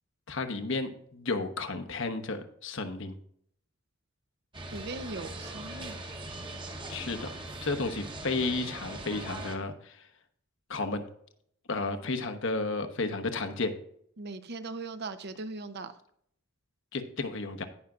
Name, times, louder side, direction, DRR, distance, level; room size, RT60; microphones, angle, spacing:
voice 1, 0.3-3.1 6.9-7.3 7.6-10.1 10.7-11.0 11.7-13.7 16.9-17.6, left 3 dB, 65° left, 8 dB, 1.1 m, -32 dB
sound 1, 4.5-9.6, right 2 dB, 25° right, 1.1 m, -41 dB
voice 2, 4.7-6.0 14.2-15.9, right 3 dB, 55° right, 10 dB, 0.8 m, -39 dB
17.0 x 5.9 x 2.5 m, 0.67 s
head